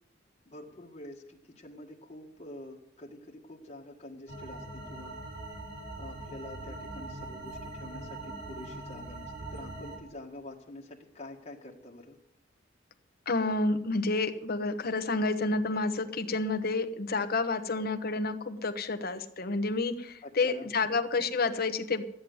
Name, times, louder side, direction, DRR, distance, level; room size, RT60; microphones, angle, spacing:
voice 1, 0.5-5.1 6.0-12.2 20.2-20.7, left 1 dB, 35° left, -2 dB, 1.8 m, -47 dB
sound 1, 4.3-10.0, right 2 dB, 65° right, 5.2 m, -42 dB
voice 2, 13.3-22.0, left 3 dB, 50° left, 8 dB, 1.1 m, -29 dB
13.5 x 8.9 x 7.9 m, 0.77 s
head